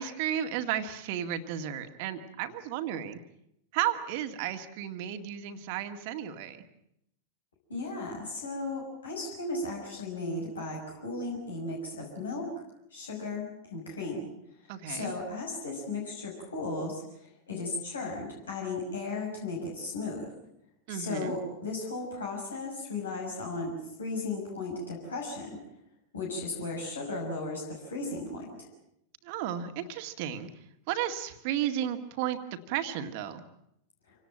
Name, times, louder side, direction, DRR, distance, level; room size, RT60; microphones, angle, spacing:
voice 1, 0.0-3.2 3.7-6.6 14.7-15.1 20.9-21.3 29.2-30.5 30.9-32.4 32.7-33.4, right 10 dB, 50° right, 8 dB, 2.1 m, -33 dB
voice 2, 7.7-12.5 12.9-14.3 14.9-17.0 17.5-20.3 20.9-23.7 24.0-25.6 26.1-28.7, left 3 dB, 70° left, -1 dB, 6.1 m, -35 dB
27.0 x 18.0 x 9.0 m, 0.79 s
figure-of-eight pair, 90°, 0 cm